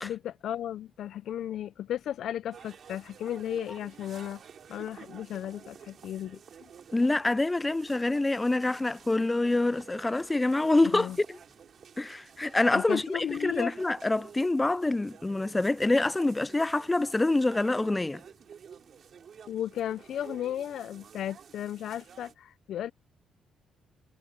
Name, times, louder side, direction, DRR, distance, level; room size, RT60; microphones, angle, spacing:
voice 1, 0.0-4.4 4.7-6.4 10.9-11.2 12.7-13.7 19.5-22.9, left 11 dB, 70° left, 0.5 m, -35 dB
sound 1, 2.5-22.3, right 7 dB, 55° right, 3.1 m, -51 dB
voice 2, 6.9-11.4 12.0-18.2, left 2 dB, 15° left, 0.4 m, -26 dB
cardioid pair, 90°, 0 cm